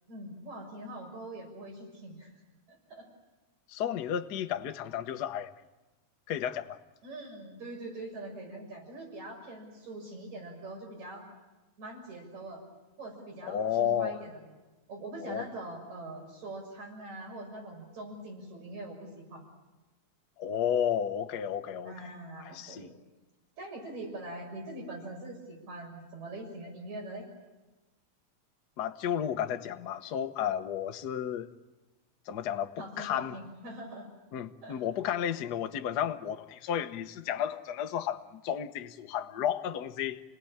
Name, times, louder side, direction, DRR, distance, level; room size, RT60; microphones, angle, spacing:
voice 1, 0.1-2.3 2.7-3.1 7.0-11.3 11.8-12.6 13.0-14.4 14.9-19.4 21.8-22.9 23.6-27.3 32.8-34.1 34.6-34.8, right 1 dB, 75° right, 7.7 m, -43 dB
voice 2, 3.7-5.5 6.3-6.8 13.4-14.2 15.2-15.4 20.4-22.1 22.4-22.9 28.8-31.5 32.3-33.4 34.3-40.2, left 9 dB, 65° left, 1.0 m, -32 dB
29.5 x 19.0 x 8.7 m
omnidirectional pair, 3.3 m